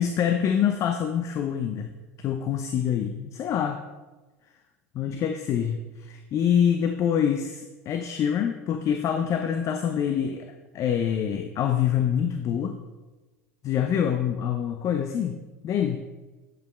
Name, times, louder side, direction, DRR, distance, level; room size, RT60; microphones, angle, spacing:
voice 1, 0.0-1.9 2.2-3.8 4.9-12.8 13.6-15.4 15.6-16.0, left 8 dB, 40° left, 7 dB, 0.7 m, -25 dB
9.3 x 8.2 x 3.2 m, 1.2 s
figure-of-eight pair, 80°, 8 cm